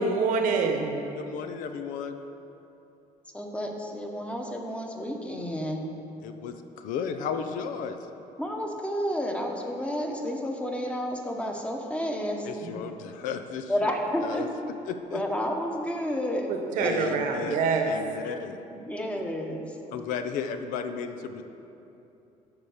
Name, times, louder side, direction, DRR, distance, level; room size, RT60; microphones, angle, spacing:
voice 1, 0.0-1.0 12.6-12.7 16.5-17.9, right 4 dB, 80° right, 4 dB, 1.2 m, -26 dB
voice 2, 1.2-2.2 6.2-8.0 12.4-13.9 14.2-14.5 14.9-15.2 16.8-17.6 17.9-18.6 19.9-21.4, left 7 dB, 90° left, 8 dB, 0.7 m, -34 dB
voice 3, 3.3-5.8 8.4-12.5 13.7-14.5 15.1-16.5 16.8-17.6 18.7-19.8, equal, 10° left, 2 dB, 1.0 m, -31 dB
10.5 x 5.1 x 7.2 m, 2.8 s
cardioid pair, 135°, 13 cm